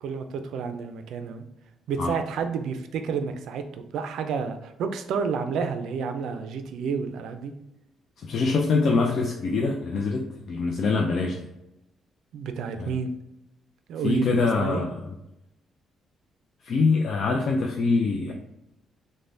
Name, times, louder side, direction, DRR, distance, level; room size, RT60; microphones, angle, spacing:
voice 1, 0.0-1.4 1.9-7.5 12.3-13.1 13.9-14.8, right 6 dB, 80° right, 7 dB, 0.3 m, -30 dB
voice 2, 8.2-11.5 12.8-13.0 14.0-15.1 16.6-18.3, left 4 dB, 60° left, 1 dB, 0.3 m, -24 dB
3.2 x 2.1 x 2.6 m, 0.87 s
cardioid pair, 90°, 0 cm